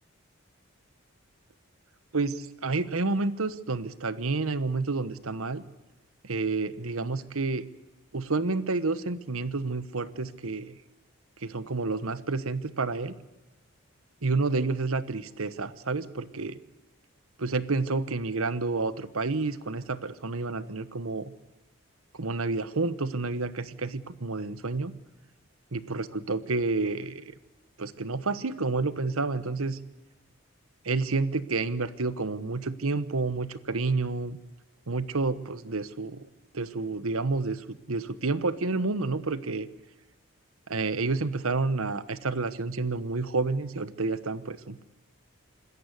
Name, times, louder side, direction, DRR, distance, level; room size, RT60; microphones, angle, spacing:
voice 1, 2.1-5.6 6.2-7.7 8.1-10.8 11.4-13.1 14.2-16.6 17.4-21.3 22.1-24.9 25.7-27.3 27.8-29.8 30.8-34.4 34.9-36.3 36.5-39.7 40.7-44.8, right 3 dB, 85° right, 15 dB, 1.1 m, -29 dB
26.0 x 14.0 x 8.2 m, 1.1 s
head